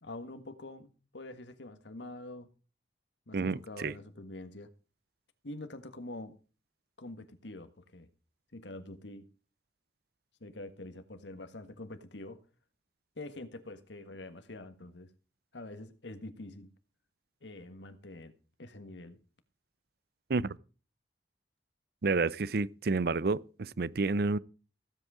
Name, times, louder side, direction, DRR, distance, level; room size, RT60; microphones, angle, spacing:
voice 1, 0.0-2.5 3.3-4.7 5.4-6.3 7.0-8.1 8.5-9.3 10.4-12.4 13.1-15.1 15.5-16.7 17.4-19.2, left 2 dB, 90° left, 1.6 m, -45 dB
voice 2, 3.3-3.9 20.3-20.6 22.0-24.4, right 3 dB, 60° right, 0.6 m, -30 dB
16.0 x 8.1 x 4.9 m
head